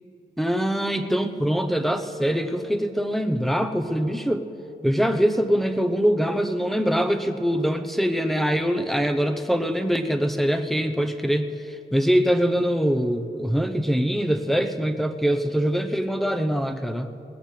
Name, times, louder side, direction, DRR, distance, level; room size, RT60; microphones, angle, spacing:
voice 1, 0.4-4.4 4.8-17.1, equal, ahead, 6 dB, 0.8 m, -23 dB
20.0 x 19.5 x 3.3 m, 2.8 s
wide cardioid pair, 95°, 18 cm